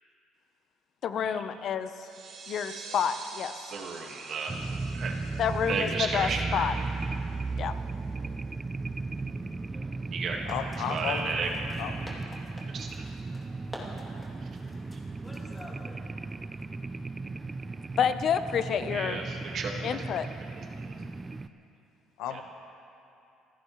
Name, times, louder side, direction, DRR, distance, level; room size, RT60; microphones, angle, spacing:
voice 1, 1.0-1.9 2.5-3.5 5.4-6.7 7.6-7.7 18.0-19.2 19.8-20.3, left 8 dB, 50° left, 10 dB, 0.7 m, -28 dB
sound 1, 2.0-7.3, right 4 dB, 65° right, 3.1 m, -47 dB
voice 2, 3.7-4.6 4.9-5.1 5.7-6.7 10.1-10.4 10.8-11.5 12.7-13.1 18.8-19.7 20.6-21.0 22.3-22.4, right 4 dB, 50° right, 1 dB, 1.6 m, -33 dB
sound 2, 4.5-21.5, right 3 dB, 20° right, 0.4 m, -36 dB
sound 3, 8.8-16.6, left 1 dB, 10° left, 2.5 m, -49 dB
voice 3, 10.5-11.3 11.8-11.9 22.2-22.4, left 8 dB, 85° left, 7 dB, 1.1 m, -33 dB
27.5 x 15.0 x 3.1 m, 2.8 s
cardioid pair, 125°, 0 cm